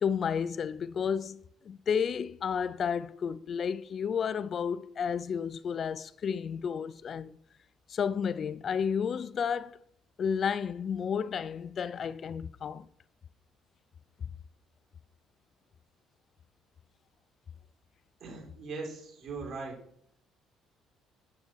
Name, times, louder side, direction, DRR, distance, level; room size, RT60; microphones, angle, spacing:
voice 1, 0.0-7.4 7.9-9.8 10.2-12.9, left 7 dB, 50° left, 0.4 m, -32 dB
voice 2, 18.2-19.7, right 4 dB, 60° right, 3.9 m, -40 dB
8.3 x 8.1 x 4.6 m
supercardioid pair, 80°, 0 cm